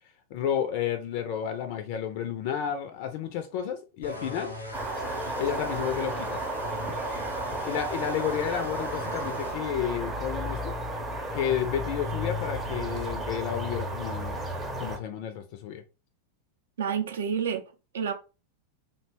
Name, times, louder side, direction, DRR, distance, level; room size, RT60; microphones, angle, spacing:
voice 1, 0.3-4.5 5.4-6.4 7.6-10.7 11.3-14.4 14.8-15.8, left 9 dB, 45° left, 0.4 m, -31 dB
sound 1, 4.0-9.6, left 1 dB, 85° left, 0.7 m, -38 dB
sound 2, 4.7-15.0, right 1 dB, 15° right, 0.6 m, -33 dB
voice 2, 16.8-18.1, right 7 dB, 65° right, 0.5 m, -30 dB
2.6 x 2.1 x 3.0 m
figure-of-eight pair, 90°, 0 cm